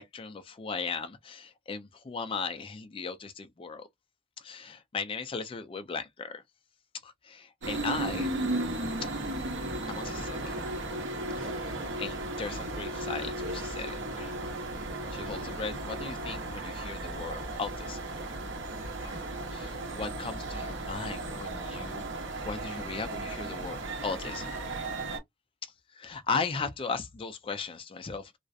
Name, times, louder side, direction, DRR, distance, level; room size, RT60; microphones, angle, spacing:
voice 1, 0.0-3.9 4.4-6.4 7.0-8.3 9.0-9.2 9.9-10.6 11.4-14.4 15.1-18.0 18.8-19.2 19.5-22.1 22.4-24.5 25.6-28.4, left 4 dB, 25° left, 0.3 m, -37 dB
sound 1, 7.6-25.2, right 2 dB, 65° right, 0.9 m, -35 dB
2.3 x 2.1 x 2.5 m
head